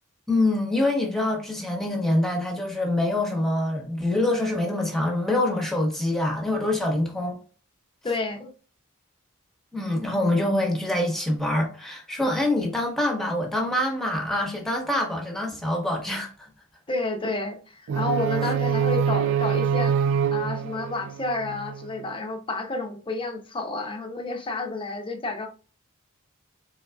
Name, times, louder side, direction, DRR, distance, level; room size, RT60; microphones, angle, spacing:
voice 1, 0.3-7.4 9.7-16.5 18.4-18.5, left 1 dB, ahead, 1.1 m, -25 dB
voice 2, 8.0-8.5 16.9-20.0 20.3-25.5, left 2 dB, 25° left, 0.7 m, -30 dB
sound 1, 17.9-21.9, right 7 dB, 65° right, 0.3 m, -25 dB
4.2 x 3.9 x 2.3 m
head